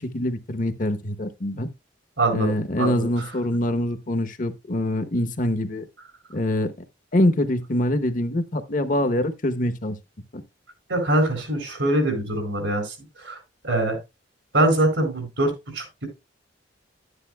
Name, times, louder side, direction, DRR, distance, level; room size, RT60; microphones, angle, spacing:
voice 1, 0.0-1.7 2.3-5.8 6.3-6.7 7.1-10.0 10.3-10.4, left 1 dB, 45° left, 0.9 m, -24 dB
voice 2, 2.2-2.5 2.8-3.1 10.9-13.4 13.6-14.0 14.5-16.1, right 1 dB, 85° right, 4.2 m, -23 dB
11.0 x 9.8 x 2.2 m
head